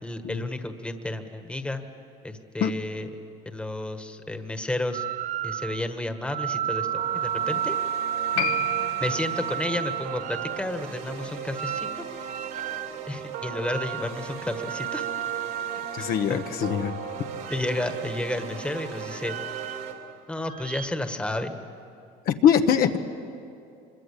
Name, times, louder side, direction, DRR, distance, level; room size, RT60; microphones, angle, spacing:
voice 1, 0.0-1.8 2.2-3.1 3.4-5.0 5.4-7.8 9.0-12.0 13.1-15.1 15.9-16.4 17.5-19.4 20.3-21.6, left 1 dB, 5° left, 7 dB, 1.5 m, -32 dB
sound 1, 4.9-5.9 6.3-10.7 11.5-13.0 13.6-14.2 14.5-16.7 17.4-18.2 19.1-20.1 20.5-20.9, right 11 dB, 45° right, 0.5 m, -32 dB
sound 2, 6.8-19.9, right 6 dB, 85° right, 3.9 m, -38 dB
Piano, 8.3-15.3 15.6-15.7, left 9 dB, 75° left, 1.5 m, -37 dB
voice 2, 15.9-17.0 22.3-23.0, left 8 dB, 55° left, 6 dB, 1.2 m, -22 dB
25.5 x 23.0 x 8.4 m, 2.6 s
cardioid pair, 120°, 18 cm